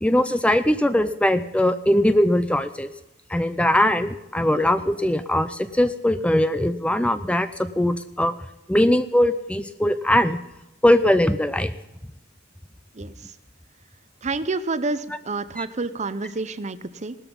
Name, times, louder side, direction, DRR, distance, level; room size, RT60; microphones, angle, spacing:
voice 1, 0.0-2.9 3.3-8.3 8.7-10.4 10.8-11.7 15.6-15.7, left 1 dB, 5° left, 12 dB, 0.5 m, -20 dB
voice 2, 14.2-17.2, right 3 dB, 35° right, 14 dB, 0.7 m, -28 dB
18.0 x 13.0 x 5.4 m, 0.91 s
head